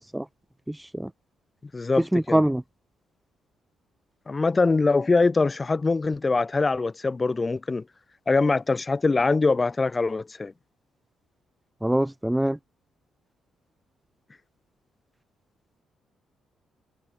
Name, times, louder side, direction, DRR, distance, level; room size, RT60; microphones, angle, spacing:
voice 1, 0.7-1.1 2.1-2.6 11.8-12.6, right 1 dB, 5° right, 4.0 m, -24 dB
voice 2, 1.7-2.4 4.3-7.8 8.3-10.5, left 3 dB, 25° left, 7.5 m, -23 dB
cardioid pair, 90°, 0 cm